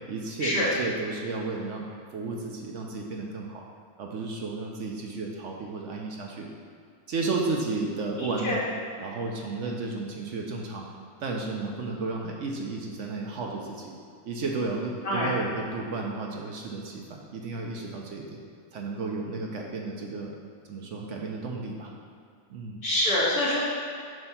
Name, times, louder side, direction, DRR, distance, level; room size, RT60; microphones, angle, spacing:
voice 1, 0.1-1.9 2.1-3.6 4.0-6.5 7.1-8.6 9.0-10.9 11.2-13.9 14.2-18.4 18.7-20.3 20.7-21.9 22.5-22.8, right 3 dB, 60° right, 0 dB, 1.0 m, -33 dB
voice 2, 8.2-8.6 15.1-15.3 22.8-23.6, left 1 dB, 80° left, -7 dB, 2.2 m, -25 dB
7.7 x 2.9 x 5.7 m, 2.3 s
omnidirectional pair, 1.5 m